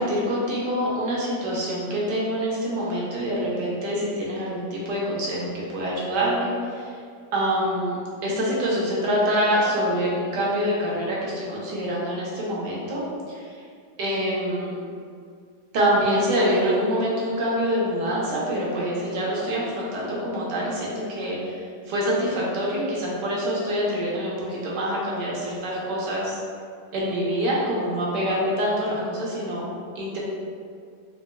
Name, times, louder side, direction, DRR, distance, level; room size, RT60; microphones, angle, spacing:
voice 1, 0.0-7.0 7.3-8.0 8.2-13.6 14.0-14.7 15.7-26.4 26.9-30.2, equal, 75° right, -5 dB, 1.3 m, -25 dB
4.1 x 2.4 x 2.2 m, 2.2 s
omnidirectional pair, 2.0 m